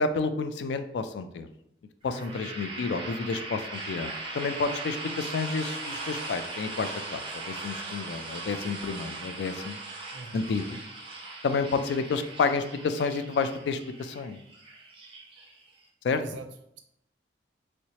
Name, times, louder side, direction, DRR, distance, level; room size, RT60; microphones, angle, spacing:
voice 1, 0.0-1.5 2.0-7.2 7.5-9.8 10.3-10.8 11.4-14.4 16.0-16.2, left 4 dB, 70° left, 9 dB, 0.3 m, -30 dB
sound 1, 2.0-15.9, right 3 dB, 30° right, 0.6 m, -39 dB
voice 2, 2.1-2.4 3.2-3.5 10.1-10.4 16.2-16.5, right 2 dB, 85° right, 8 dB, 0.4 m, -42 dB
3.1 x 3.0 x 2.8 m, 0.76 s
head